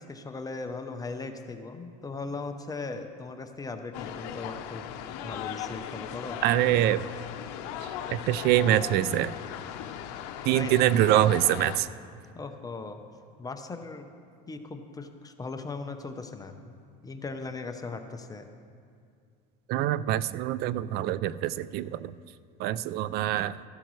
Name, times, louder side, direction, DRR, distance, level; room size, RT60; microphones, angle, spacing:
voice 1, 0.0-4.9 5.2-6.4 10.5-10.9 12.3-13.0 13.4-14.1 14.5-16.8 17.0-18.5, left 3 dB, 15° left, 6 dB, 0.7 m, -38 dB
sound 1, 3.9-11.8, left 9 dB, 75° left, 0.8 m, -38 dB
voice 2, 6.4-7.0 7.8-9.3 10.4-11.9 19.7-22.1 22.6-23.6, right 13 dB, 50° right, 17 dB, 0.4 m, -25 dB
15.0 x 12.0 x 3.2 m, 2.3 s
supercardioid pair, 115°, 21 cm